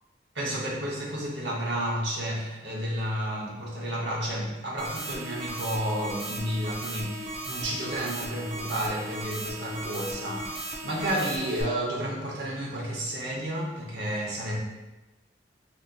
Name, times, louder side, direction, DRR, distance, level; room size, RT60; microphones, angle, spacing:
voice 1, 0.3-14.6, right 1 dB, 80° right, -2 dB, 0.8 m, -31 dB
sound 1, 4.8-11.6, right 1 dB, 35° right, 0.5 m, -37 dB
3.9 x 2.8 x 2.3 m, 1.1 s
head